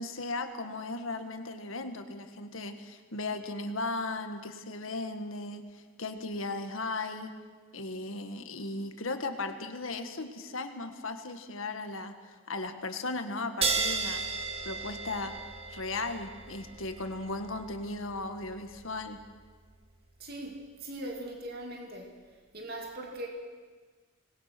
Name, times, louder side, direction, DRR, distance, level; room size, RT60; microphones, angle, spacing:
voice 1, 0.0-7.3 7.7-14.2 14.6-15.3 15.7-19.2, left 2 dB, 75° left, 7 dB, 1.8 m, -36 dB
sound 1, 13.6-20.6, right 4 dB, 30° right, 1.7 m, -36 dB
voice 2, 20.2-22.2 22.5-23.3, right 1 dB, 50° right, 0 dB, 2.7 m, -40 dB
25.5 x 20.5 x 6.1 m, 1.4 s
head